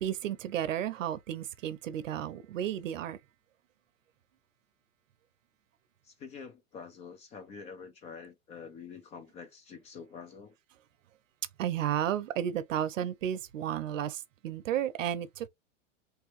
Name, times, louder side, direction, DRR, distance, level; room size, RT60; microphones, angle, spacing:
voice 1, 0.0-3.2 11.6-15.5, right 10 dB, 85° right, 0.7 m, -33 dB
voice 2, 6.0-10.6, left 6 dB, 20° left, 0.4 m, -47 dB
3.3 x 2.8 x 3.0 m
hypercardioid pair, 125°, 37 cm